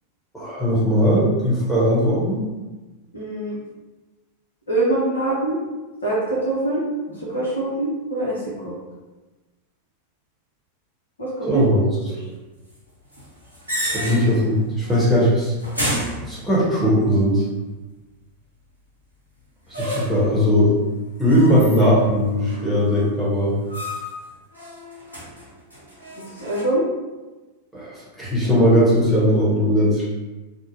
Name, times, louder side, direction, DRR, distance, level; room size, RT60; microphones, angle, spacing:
voice 1, 0.3-2.4 11.5-11.8 13.9-15.5 16.3-17.4 19.7-20.8 21.2-23.6 27.7-30.1, equal, ahead, -9 dB, 1.0 m, -19 dB
voice 2, 3.1-3.6 4.7-5.6 6.0-8.7 11.2-11.6 12.1-12.2 26.2-26.9, right 2 dB, 75° left, -5 dB, 0.8 m, -24 dB
sound 1, 13.1-14.5 14.8-15.2 15.6-16.9 19.7-20.3 21.3-22.1 22.4-23.1 23.7-24.2 24.5-26.6, equal, 90° right, 0.7 m, -31 dB
2.6 x 2.1 x 2.8 m, 1.2 s
figure-of-eight pair, 90°, 0 cm